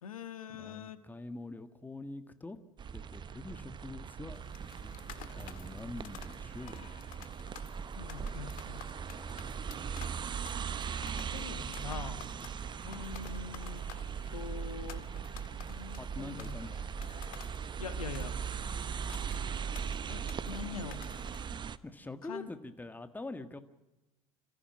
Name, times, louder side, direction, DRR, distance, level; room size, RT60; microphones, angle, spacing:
voice 1, 0.0-1.0 8.0-8.8 11.2-12.3 12.8-13.8 14.3-15.0 15.7-16.6 17.8-18.3 19.4-19.6 20.1-21.0 22.2-22.5, left 7 dB, 85° left, 11 dB, 1.6 m, -44 dB
voice 2, 0.6-2.6 2.9-4.4 4.8-4.9 5.4-6.9 15.9-16.9 17.9-18.0 21.8-23.6, left 2 dB, 10° left, 9 dB, 1.7 m, -45 dB
sound 1, 2.8-21.8, right 7 dB, 25° right, 0.8 m, -39 dB
sound 2, 4.3-21.6, left 12 dB, 50° left, 1.8 m, -53 dB
28.5 x 15.0 x 7.5 m, 1.0 s
hypercardioid pair, 80°, 18 cm